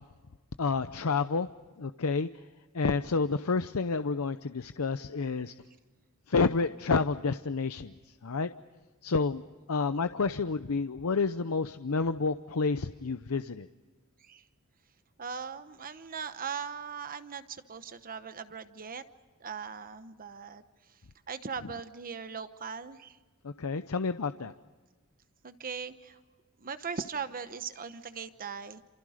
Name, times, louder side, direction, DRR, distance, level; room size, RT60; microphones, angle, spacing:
voice 1, 0.6-1.5 1.8-2.3 2.7-5.5 6.3-7.9 8.2-8.5 9.0-9.4 9.7-13.7 23.4-24.5, left 4 dB, 75° left, 10 dB, 0.7 m, -29 dB
voice 2, 15.2-19.0 19.4-20.6 21.3-23.2 25.4-26.2 26.6-28.8, right 6 dB, 40° right, 11 dB, 1.0 m, -39 dB
29.0 x 28.0 x 5.0 m, 1.3 s
head